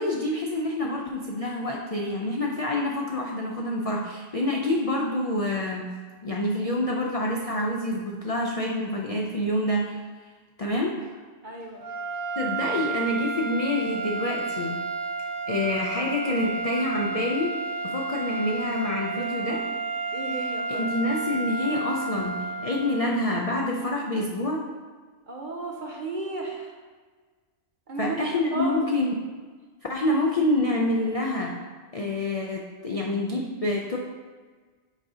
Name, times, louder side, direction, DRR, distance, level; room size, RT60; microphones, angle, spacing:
voice 1, 0.0-10.0 10.6-11.2 12.4-14.8 15.5-19.8 20.3-24.7 28.0-29.2 29.9-31.6 31.9-34.0, left 1 dB, 65° left, 0 dB, 0.3 m, -27 dB
voice 2, 11.4-11.8 19.1-19.5 20.1-21.0 25.3-26.8 27.9-28.8, right 3 dB, 50° right, 0 dB, 0.6 m, -34 dB
sound 1, 11.8-23.3, right 3 dB, 85° right, 1.3 m, -31 dB
7.2 x 2.7 x 4.8 m, 1.4 s
omnidirectional pair, 1.3 m